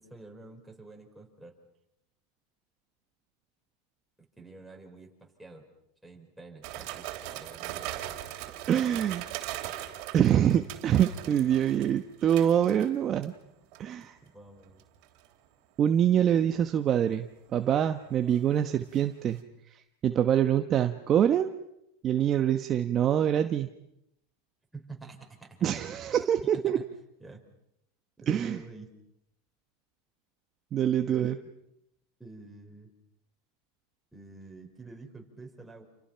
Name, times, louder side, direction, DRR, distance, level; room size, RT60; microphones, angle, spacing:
voice 1, 0.0-1.5 4.4-5.7 6.0-7.9 14.3-14.8 24.7-25.6 26.5-26.8 27.2-27.4 28.2-28.9 31.1-31.6 32.2-32.9 34.1-35.8, right 3 dB, 5° right, 0 dB, 5.4 m, -48 dB
sound 1, 6.6-13.4 13.7-14.0 14.8-15.3 17.4-19.0 19.4-19.5, right 14 dB, 55° right, 3.2 m, -40 dB
voice 2, 8.7-9.3 10.1-13.3 13.8-14.1 15.8-17.3 17.5-19.4 20.0-21.5 22.0-23.7 25.6-26.8 28.3-28.6 30.7-31.3, right 10 dB, 30° right, 7 dB, 1.1 m, -25 dB
30.0 x 28.5 x 5.8 m, 0.80 s
supercardioid pair, 135°, 0 cm